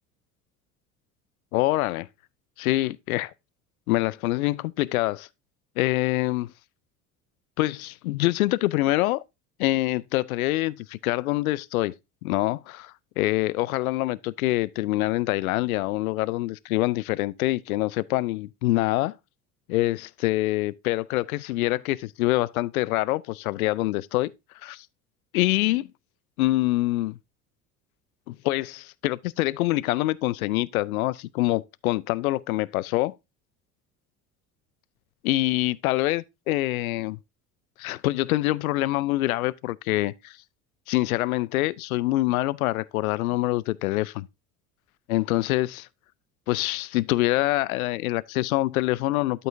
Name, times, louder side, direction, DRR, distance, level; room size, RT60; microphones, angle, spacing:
voice 1, 1.5-2.1 2.6-3.3 3.9-5.3 5.8-6.5 7.6-9.2 9.6-11.9 12.2-19.1 19.7-24.3 24.6-24.9 25.3-25.9 26.4-27.2 28.3-33.1 35.2-37.2 37.8-40.4 40.9-44.3 45.1-45.9 46.5-49.5, left 18 dB, 70° left, 0.5 m, -25 dB
12.5 x 5.5 x 2.6 m
figure-of-eight pair, 65°, 44 cm